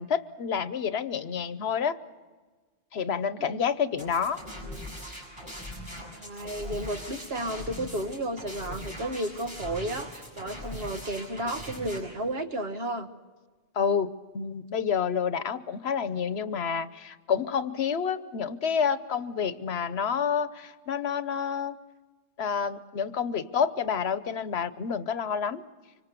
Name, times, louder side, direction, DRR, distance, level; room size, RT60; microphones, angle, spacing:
voice 1, 0.0-2.0 2.9-4.4 13.7-21.8 22.4-25.6, left 7 dB, 85° left, 13 dB, 1.2 m, -29 dB
sound 1, 4.0-12.0, equal, 25° right, 7.0 m, -41 dB
voice 2, 6.2-13.1, right 1 dB, 75° right, 7 dB, 1.7 m, -33 dB
25.5 x 25.0 x 6.8 m, 1.4 s
omnidirectional pair, 1.0 m